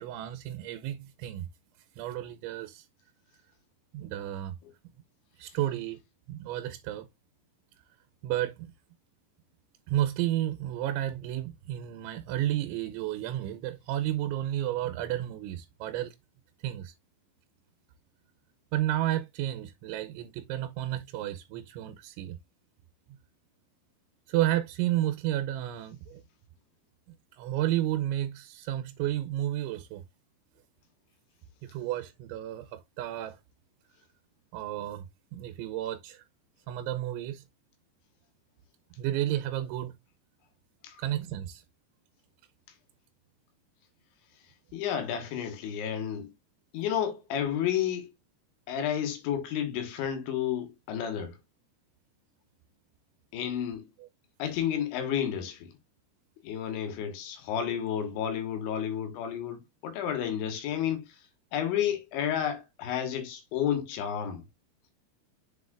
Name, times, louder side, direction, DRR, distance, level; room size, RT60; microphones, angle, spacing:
voice 1, 0.0-1.4 2.0-2.9 3.9-4.5 5.4-6.0 6.3-7.1 8.2-8.7 9.9-16.2 16.6-16.9 18.7-22.4 24.3-26.2 27.3-30.0 31.6-33.4 34.5-35.1 35.3-36.2 36.7-37.4 39.0-39.9 41.0-41.6, right 13 dB, 85° right, 3.0 m, -32 dB
voice 2, 44.7-46.3 46.7-48.1 48.7-51.4 53.3-53.9 54.4-55.7 56.4-64.4, left 9 dB, 85° left, 3.7 m, -31 dB
7.3 x 6.2 x 2.5 m
omnidirectional pair, 5.3 m